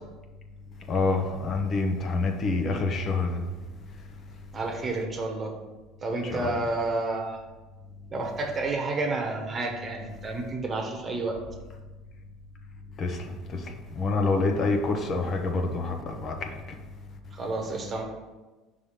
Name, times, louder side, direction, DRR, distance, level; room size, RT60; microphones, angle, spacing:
voice 1, 0.9-3.4 6.2-6.5 13.0-16.5, left 3 dB, 40° left, 4 dB, 0.8 m, -27 dB
voice 2, 4.5-5.5 6.0-7.4 8.1-11.4 17.3-18.0, right 2 dB, 30° right, 2 dB, 1.1 m, -30 dB
5.4 x 3.3 x 5.7 m, 1.2 s
supercardioid pair, 115°, 0 cm